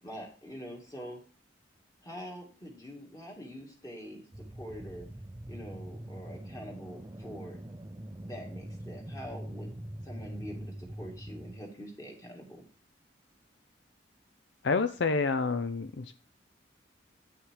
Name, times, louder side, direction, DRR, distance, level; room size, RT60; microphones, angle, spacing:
voice 1, 0.0-1.2 2.0-5.1 5.5-7.6 8.2-9.7 10.0-12.6, equal, 20° left, 0 dB, 2.5 m, -44 dB
sound 1, 4.3-11.6, right 1 dB, 20° right, 0.5 m, -43 dB
voice 2, 14.6-16.1, left 4 dB, 65° left, 10 dB, 0.5 m, -28 dB
9.6 x 6.4 x 4.8 m, 0.38 s
head